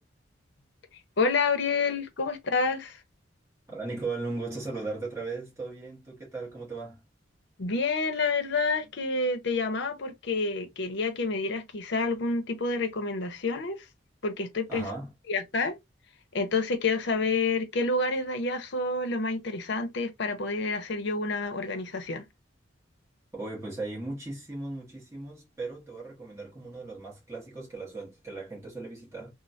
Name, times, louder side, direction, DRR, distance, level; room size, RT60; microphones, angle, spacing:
voice 1, 1.2-3.0 7.6-13.9 14.2-14.9 15.3-15.8 16.3-22.3, left 3 dB, 65° left, 0.7 m, -28 dB
voice 2, 3.7-7.0 14.7-15.1 23.3-29.3, right 3 dB, 15° right, 1.0 m, -37 dB
3.1 x 2.1 x 2.6 m
head